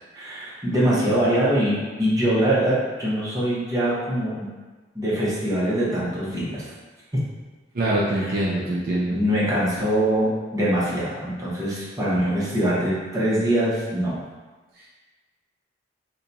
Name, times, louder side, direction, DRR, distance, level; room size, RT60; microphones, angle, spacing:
voice 1, 0.1-4.5 4.9-6.7 8.2-8.4 9.1-14.1, right 1 dB, 20° right, -8 dB, 0.9 m, -23 dB
voice 2, 7.7-9.2 14.8-14.9, right 1 dB, 50° right, -5 dB, 0.4 m, -24 dB
2.8 x 2.3 x 3.9 m, 1.3 s
head